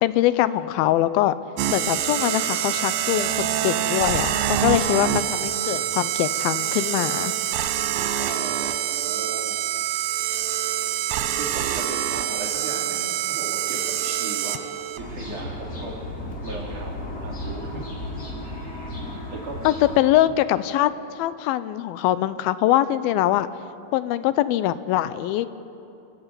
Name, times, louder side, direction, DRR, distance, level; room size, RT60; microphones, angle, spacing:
voice 1, 0.0-1.4 1.7-7.3 19.6-23.5 23.9-25.5, left 13 dB, 85° left, 14 dB, 2.5 m, -23 dB
sound 1, 1.6-15.0, right 11 dB, 85° right, 2.7 m, -25 dB
voice 2, 5.0-5.4 5.7-5.8 8.2-9.6 11.3-14.6 15.0-16.0 16.4-18.0 18.4-19.7 20.2-20.3, right 2 dB, 55° right, -2 dB, 4.7 m, -37 dB
sound 2, 15.0-20.0, left 1 dB, 25° left, 3.0 m, -34 dB
29.0 x 15.0 x 8.2 m, 2.7 s
omnidirectional pair, 4.2 m